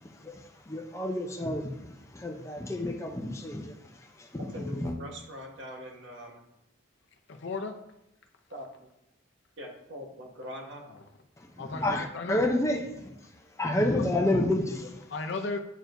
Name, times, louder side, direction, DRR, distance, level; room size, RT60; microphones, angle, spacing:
voice 1, 0.2-1.8 2.1-3.7 4.2-4.9 11.4-13.1 13.6-15.0, left 1 dB, 15° left, 0.6 m, -29 dB
voice 2, 4.4-6.4 8.5-8.9 9.6-10.8, equal, 65° right, 1.3 m, -42 dB
voice 3, 7.3-7.8 10.9-11.0 11.6-12.4 14.0-14.1 15.1-15.6, left 3 dB, 60° left, 0.6 m, -35 dB
9.0 x 4.6 x 2.6 m
head